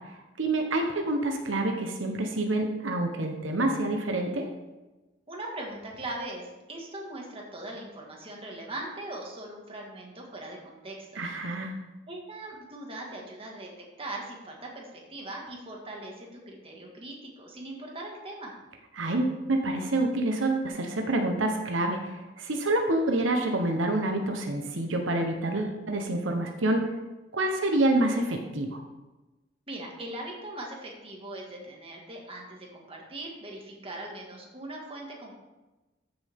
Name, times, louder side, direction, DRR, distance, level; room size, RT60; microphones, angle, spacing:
voice 1, 0.1-4.5 11.2-11.8 19.0-26.9 27.3-28.8, right 2 dB, 85° right, 3 dB, 1.1 m, -27 dB
voice 2, 5.3-11.2 12.1-18.5 29.7-35.3, right 1 dB, 30° right, -1 dB, 2.0 m, -40 dB
13.5 x 6.9 x 3.7 m, 1.1 s
head